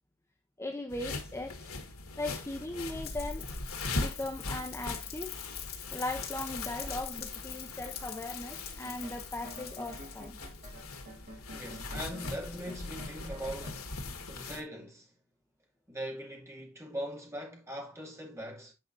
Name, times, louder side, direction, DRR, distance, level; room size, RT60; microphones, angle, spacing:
voice 1, 0.6-1.7 2.2-3.5 3.9-5.4 5.9-10.4, left 2 dB, 15° left, 0.7 m, -38 dB
sound 1, 0.9-14.6, left 3 dB, 90° left, 1.7 m, -40 dB
Rain, 3.0-11.1, left 10 dB, 50° left, 2.0 m, -44 dB
sound 2, 8.8-13.8, right 1 dB, 40° right, 1.5 m, -50 dB
voice 2, 11.5-13.8 14.3-15.1 15.9-18.7, equal, 15° right, 2.3 m, -41 dB
9.0 x 5.1 x 2.6 m
head